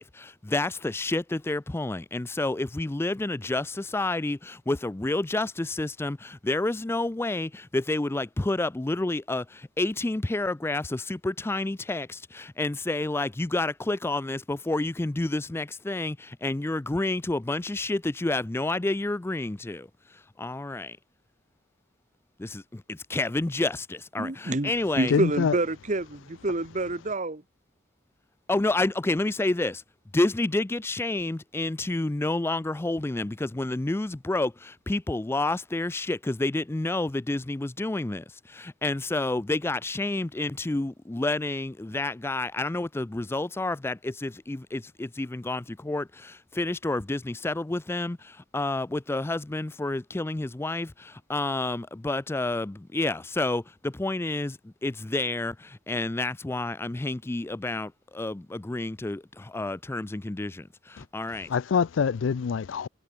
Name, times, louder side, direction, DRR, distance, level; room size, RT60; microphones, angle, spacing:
voice 1, 0.0-21.0 22.4-25.2 28.5-29.8 30.1-61.5, left 2 dB, 15° left, 0.4 m, -29 dB
voice 2, 24.2-24.7 25.0-27.4, right 2 dB, 40° right, 1.3 m, -28 dB
voice 3, 25.1-25.5 61.5-62.9, left 6 dB, 85° left, 0.4 m, -25 dB
head